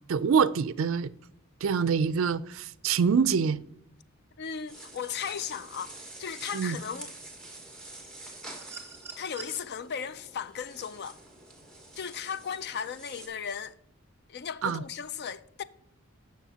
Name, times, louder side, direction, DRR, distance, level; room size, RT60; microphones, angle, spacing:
voice 1, 0.1-1.1 1.6-3.6 6.5-6.8 14.6-14.8, right 6 dB, 65° right, 0.4 m, -25 dB
voice 2, 4.4-5.9 6.2-7.1 9.2-11.2 12.0-13.7 14.3-15.6, left 7 dB, 50° left, 0.4 m, -36 dB
sound 1, 4.7-13.3, right 2 dB, 5° left, 1.8 m, -47 dB
sound 2, 8.5-9.6 11.1-11.2, right 6 dB, 15° right, 2.1 m, -44 dB
14.0 x 6.0 x 2.8 m
head